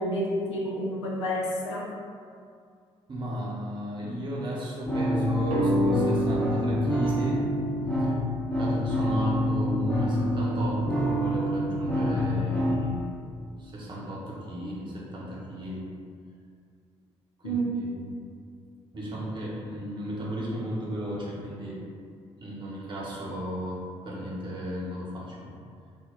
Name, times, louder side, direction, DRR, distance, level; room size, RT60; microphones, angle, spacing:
voice 1, 0.0-1.8 17.4-17.7, right 1 dB, 80° left, -5 dB, 0.4 m, -29 dB
voice 2, 3.1-7.4 7.9-8.1 8.5-13.1 13.6-15.9 17.4-18.2 18.9-21.8 22.4-25.5, equal, 35° right, -5 dB, 0.8 m, -34 dB
sound 1, 4.9-12.9, equal, 10° left, 0.6 m, -27 dB
sound 2, 5.5-8.7, equal, 65° right, 0.4 m, -30 dB
2.2 x 2.1 x 3.6 m, 2.2 s
figure-of-eight pair, 45°, 15 cm